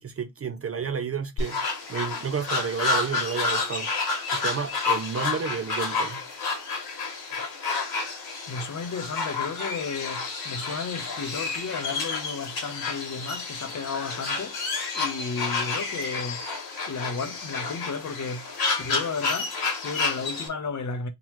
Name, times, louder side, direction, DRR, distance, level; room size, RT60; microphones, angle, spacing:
voice 1, 0.0-1.6 1.9-3.9 4.3-6.2, right 6 dB, 35° right, 0.4 m, -31 dB
sound 1, 1.4-20.5, left 4 dB, 60° left, 1.8 m, -30 dB
voice 2, 8.5-14.7 14.9-16.5 16.9-21.1, left 4 dB, 45° left, 0.8 m, -33 dB
3.8 x 2.9 x 3.0 m
wide cardioid pair, 155°, 42 cm